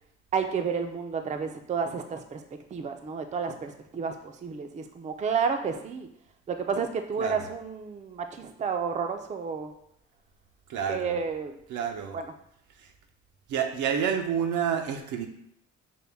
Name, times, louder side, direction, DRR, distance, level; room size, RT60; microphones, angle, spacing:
voice 1, 0.3-2.4 2.7-6.1 6.5-9.7 10.9-11.6 12.1-12.3, right 6 dB, 25° right, 6 dB, 0.4 m, -31 dB
voice 2, 10.7-11.2 11.7-12.2 13.5-15.3, right 8 dB, 80° right, 5 dB, 0.6 m, -29 dB
5.3 x 2.2 x 3.4 m, 0.74 s
cardioid pair, 90°, 30 cm